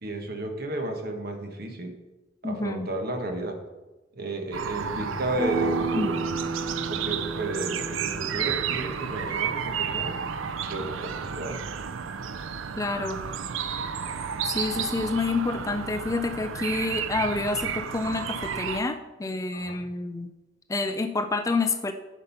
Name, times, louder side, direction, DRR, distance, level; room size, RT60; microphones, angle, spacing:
voice 1, 0.0-1.9 2.4-3.6 4.1-6.2 6.9-10.2 10.6-11.6 13.2-13.3 14.7-15.1 19.5-19.9, right 2 dB, 50° right, 4 dB, 1.3 m, -33 dB
voice 2, 2.4-2.9 6.0-6.1 12.8-13.2 14.4-20.3 20.7-21.9, left 3 dB, 15° left, 8 dB, 0.4 m, -28 dB
sound 1, 4.5-18.8, right 7 dB, 80° right, 0.5 m, -32 dB
sound 2, 5.4-10.9, right 3 dB, 5° right, 3.2 m, -33 dB
9.8 x 5.1 x 5.7 m, 1.1 s
head